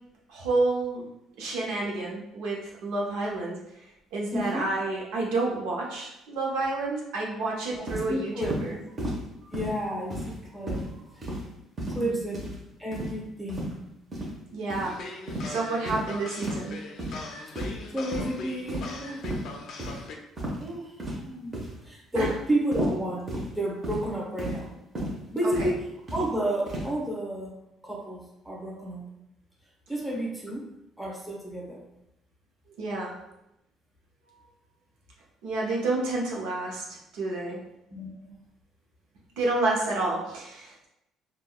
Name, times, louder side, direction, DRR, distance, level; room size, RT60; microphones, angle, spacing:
voice 1, 0.3-1.1 1.4-8.8 12.0-12.2 14.5-15.1 15.5-16.9 22.2-22.3 25.6-25.7 32.8-33.1 35.4-36.8 37.1-37.6 39.4-40.9, right 2 dB, 85° right, -3 dB, 0.7 m, -29 dB
voice 2, 4.3-4.7 7.7-8.5 9.4-11.6 11.9-12.4 12.8-13.7 17.5-19.2 19.7-19.8 20.6-21.5 21.8-23.3 23.5-24.7 25.3-27.5 27.8-29.1 29.9-30.7 31.0-31.8 37.9-38.4, right 1 dB, 5° right, -4 dB, 0.9 m, -32 dB
sound 1, 7.9-8.1 8.4-8.6 9.0-9.2 9.5-9.8 10.1-10.4 10.7-10.9 11.2-11.5 11.8-12.0 12.3-12.6 12.9-13.1 13.5-13.7 14.1-14.3 14.7-14.9 15.3-15.5 15.9-16.1 16.4-16.6 17.0-17.2 17.6-17.8 18.1-18.3 18.7-19.0 19.2-19.4 19.8-19.9 20.4-20.7 21.0-21.3 21.5-21.8 22.1-22.4 22.7-23.0 23.3-23.5 23.8-24.0 24.4-24.6 25.0-25.1 25.5-25.7 26.1-26.3 26.7-26.9, right 1 dB, 35° right, 0.9 m, -33 dB
sound 2, 14.8-20.2, left 3 dB, 65° left, 0.4 m, -40 dB
3.6 x 2.2 x 2.2 m, 0.86 s
cardioid pair, 90°, 0 cm